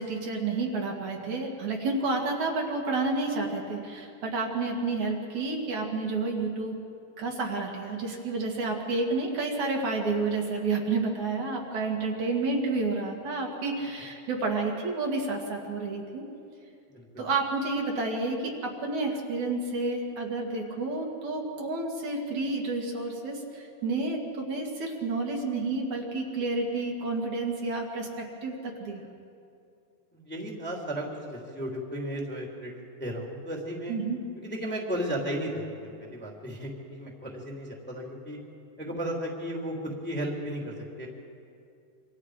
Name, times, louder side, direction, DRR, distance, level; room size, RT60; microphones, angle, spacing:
voice 1, 0.0-6.8 7.2-16.2 17.2-29.0 33.9-34.2, right 3 dB, 55° right, 0 dB, 3.4 m, -30 dB
voice 2, 16.9-17.2 30.1-34.0 34.3-38.4 38.8-41.1, equal, 5° left, -1 dB, 2.5 m, -35 dB
27.0 x 26.0 x 5.0 m, 2.5 s
omnidirectional pair, 4.1 m